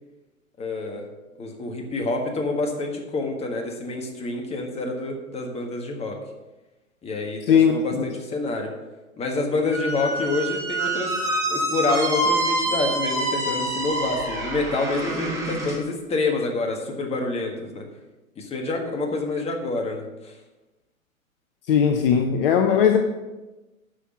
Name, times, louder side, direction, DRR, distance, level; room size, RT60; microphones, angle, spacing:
voice 1, 0.6-1.1 1.4-6.2 7.0-8.7 9.2-11.1 11.5-17.8 18.4-20.3, left 3 dB, 15° left, 2 dB, 1.6 m, -27 dB
voice 2, 7.5-8.0 21.7-23.0, left 7 dB, 40° left, 5 dB, 0.9 m, -18 dB
Squeak, 9.7-15.8, right 1 dB, 5° right, 1.9 m, -26 dB
10.0 x 6.2 x 6.2 m, 1.1 s
figure-of-eight pair, 115°, 42 cm